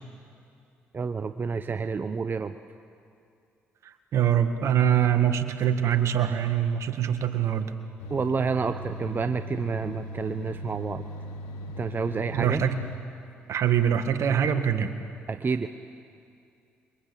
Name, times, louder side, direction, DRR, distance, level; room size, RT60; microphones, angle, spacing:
voice 1, 0.9-2.5 8.1-11.0 11.8-12.6 15.3-15.7, right 5 dB, 40° right, 10 dB, 0.9 m, -29 dB
voice 2, 4.1-7.7 12.3-12.8 13.5-15.0, right 9 dB, 65° right, 9 dB, 1.7 m, -24 dB
sound 1, 8.0-13.0, equal, 85° left, 1.7 m, -39 dB
27.5 x 23.5 x 8.5 m, 2.5 s
hypercardioid pair, 55°, 5 cm